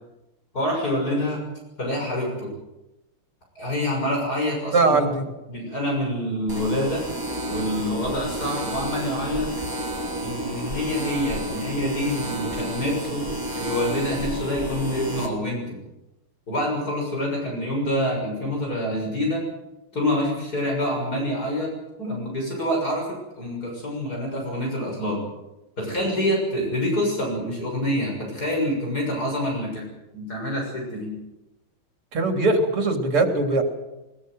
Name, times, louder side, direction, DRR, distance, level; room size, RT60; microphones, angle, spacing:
voice 1, 0.5-1.4 1.8-2.5 3.6-5.0 5.5-7.0 7.5-9.5 10.2-13.3 13.6-15.8 16.5-19.4 19.9-21.7 22.0-25.2 25.8-29.8 30.1-31.1, left 1 dB, 45° left, -1 dB, 7.2 m, -26 dB
voice 2, 4.7-5.2 32.1-33.6, right 3 dB, 90° right, 4 dB, 4.3 m, -20 dB
sound 1, 6.5-15.3, right 1 dB, 10° right, 3.7 m, -31 dB
22.0 x 21.5 x 7.9 m, 0.98 s
omnidirectional pair, 2.4 m